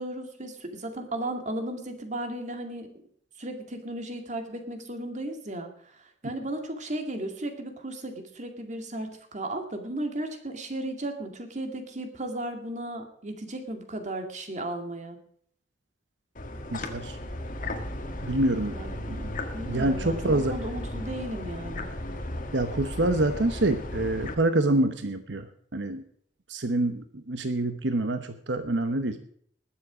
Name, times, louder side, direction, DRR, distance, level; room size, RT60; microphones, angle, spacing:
voice 1, 0.0-2.9 3.4-15.2 18.7-21.9, right 1 dB, 45° right, 5 dB, 2.2 m, -35 dB
sound 1, 16.4-24.4, left 1 dB, 50° left, 1.6 m, -35 dB
voice 2, 16.7-17.2 18.2-18.7 19.1-19.3 19.6-20.6 22.5-26.0 26.5-29.2, right 2 dB, 90° right, 8 dB, 1.0 m, -26 dB
20.5 x 7.4 x 5.0 m, 0.62 s
head